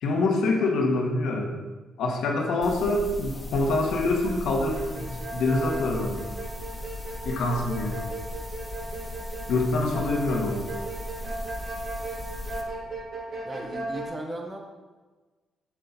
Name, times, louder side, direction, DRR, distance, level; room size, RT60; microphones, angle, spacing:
voice 1, 0.0-1.5 2.0-6.2 7.2-8.0 9.5-10.6, left 2 dB, 80° left, 0 dB, 1.5 m, -25 dB
sound 1, 2.6-12.6, left 1 dB, 10° left, 1.6 m, -38 dB
sound 2, 4.2-4.4 4.7-14.1, right 2 dB, 55° right, 2.8 m, -37 dB
voice 2, 13.4-14.6, right 1 dB, 25° right, 1 dB, 1.7 m, -36 dB
7.5 x 7.5 x 4.1 m, 1.3 s
cardioid pair, 90°, 0 cm